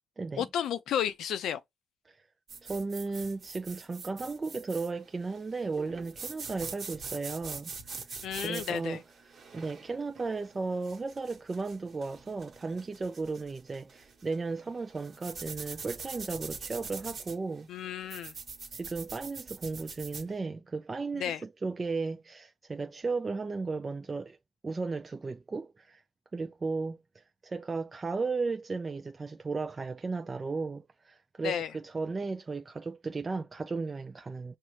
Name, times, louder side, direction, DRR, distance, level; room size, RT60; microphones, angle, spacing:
voice 1, 0.4-1.6 8.2-9.0 17.7-18.3 21.1-21.4 31.4-31.7, left 9 dB, 75° left, 0.4 m, -32 dB
sound 1, 2.5-20.3, right 5 dB, 50° right, 1.1 m, -44 dB
voice 2, 2.6-8.1 8.4-17.7 18.7-24.4 24.6-26.0 26.3-34.6, right 4 dB, 30° right, 0.3 m, -35 dB
5.4 x 2.0 x 3.1 m
supercardioid pair, 70°, 0 cm